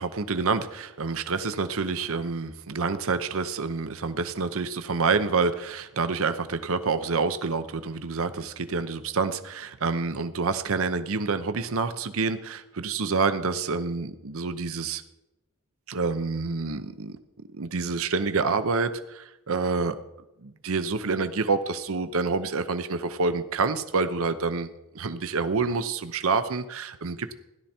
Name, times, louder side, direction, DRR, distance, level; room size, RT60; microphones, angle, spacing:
voice 1, 0.0-15.0 15.9-17.2 17.5-20.0 20.4-24.7 24.9-27.3, right 4 dB, 65° right, 10 dB, 0.8 m, -27 dB
17.0 x 11.5 x 4.4 m, 0.90 s
head